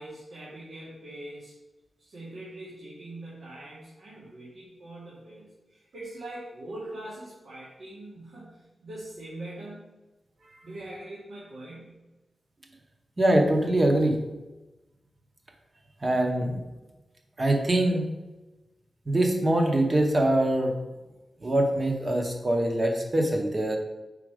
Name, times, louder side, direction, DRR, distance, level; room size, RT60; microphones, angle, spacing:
voice 1, 0.0-1.5 2.0-9.8 10.6-12.0, right 1 dB, 70° right, -8 dB, 1.7 m, -42 dB
voice 2, 13.2-14.2 16.0-16.6 17.4-18.0 19.1-20.7 21.4-23.8, right 1 dB, 25° right, 3 dB, 0.9 m, -23 dB
4.9 x 4.5 x 5.0 m, 1.1 s
wide cardioid pair, 175°, 0 cm